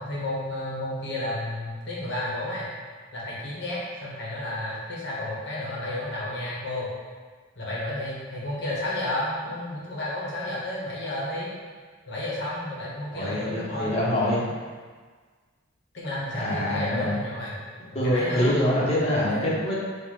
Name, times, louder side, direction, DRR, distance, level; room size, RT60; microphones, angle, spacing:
voice 1, 0.0-2.7 3.1-6.9 7.6-11.5 12.1-13.9 14.5-14.6 15.9-17.6 17.9-18.5 19.2-19.5, left 1 dB, 60° left, -6 dB, 1.3 m, -32 dB
voice 2, 13.1-14.4 16.3-17.2 17.9-19.7, equal, 30° left, -7 dB, 1.1 m, -25 dB
4.2 x 2.5 x 4.8 m, 1.5 s
head